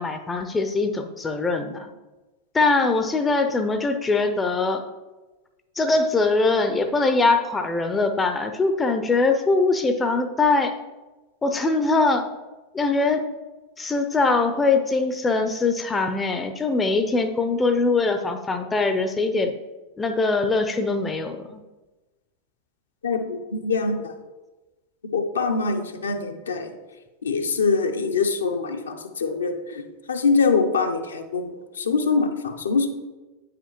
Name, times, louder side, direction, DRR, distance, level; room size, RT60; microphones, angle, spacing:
voice 1, 0.0-1.9 2.5-4.8 5.8-10.7 11.4-12.3 12.7-13.3 13.8-19.6 20.0-21.6, left 3 dB, 15° left, 7 dB, 0.5 m, -22 dB
voice 2, 23.0-24.1 25.1-26.8 27.2-32.9, left 4 dB, 70° left, 5 dB, 0.7 m, -24 dB
8.7 x 4.9 x 3.0 m, 1.2 s
figure-of-eight pair, 90°, 0 cm